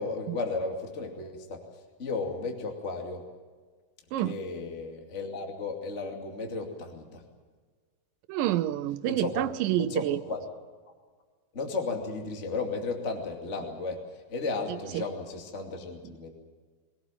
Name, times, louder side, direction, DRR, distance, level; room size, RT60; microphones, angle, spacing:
voice 1, 0.0-1.6 2.0-3.2 4.2-7.2 9.1-9.4 9.8-10.4 11.5-14.0 14.3-16.3, left 3 dB, 25° left, 2 dB, 2.5 m, -34 dB
voice 2, 8.3-10.2 14.7-15.1, right 13 dB, 80° right, 13 dB, 2.5 m, -28 dB
24.0 x 17.5 x 7.5 m, 1.5 s
omnidirectional pair, 3.9 m